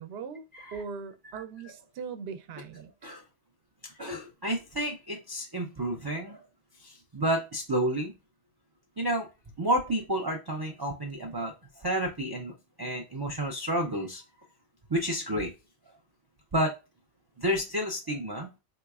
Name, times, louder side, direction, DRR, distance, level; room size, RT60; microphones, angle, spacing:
voice 1, 0.0-2.9, right 6 dB, 70° right, 0.8 m, -40 dB
voice 2, 4.0-6.4 6.8-8.1 9.0-9.3 9.6-14.2 14.9-15.5 16.5-16.7 17.4-18.5, right 1 dB, 40° right, 0.3 m, -30 dB
3.9 x 3.0 x 2.3 m
omnidirectional pair, 1.2 m